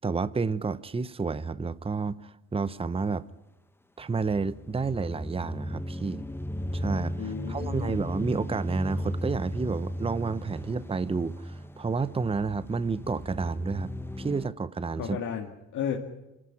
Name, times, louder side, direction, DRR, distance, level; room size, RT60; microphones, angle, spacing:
voice 1, 0.0-3.2 4.0-6.2 6.7-13.9 14.2-15.2, right 4 dB, 20° right, 0.8 m, -30 dB
sound 1, 4.2-14.5, equal, 10° left, 0.8 m, -36 dB
voice 2, 7.2-8.0 15.0-16.0, left 8 dB, 75° left, 2.3 m, -33 dB
26.5 x 12.5 x 9.9 m
cardioid pair, 90°, 30 cm